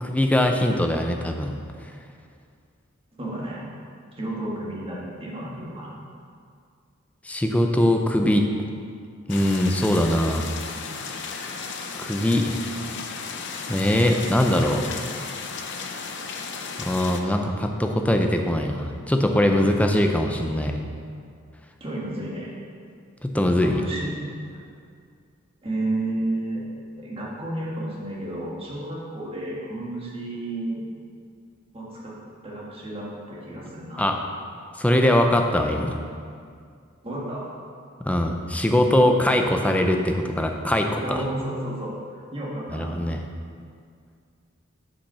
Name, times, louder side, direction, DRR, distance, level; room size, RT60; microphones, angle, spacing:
voice 1, 0.0-1.5 7.2-8.4 9.3-10.5 12.0-12.6 13.7-14.8 16.8-20.8 23.2-23.8 34.0-34.2 34.8-36.0 38.0-41.2 42.7-43.2, left 1 dB, 5° left, 4 dB, 0.5 m, -22 dB
voice 2, 3.2-3.7 4.1-5.9 21.8-22.5 23.6-24.1 24.5-24.6 25.6-26.6 27.0-30.9 31.7-32.2 32.4-34.0 37.0-37.5 41.0-42.0 42.3-42.9, right 1 dB, 30° right, -5 dB, 1.6 m, -31 dB
sound 1, 9.3-17.2, left 5 dB, 60° left, 0.6 m, -34 dB
7.0 x 5.3 x 5.5 m, 2.2 s
head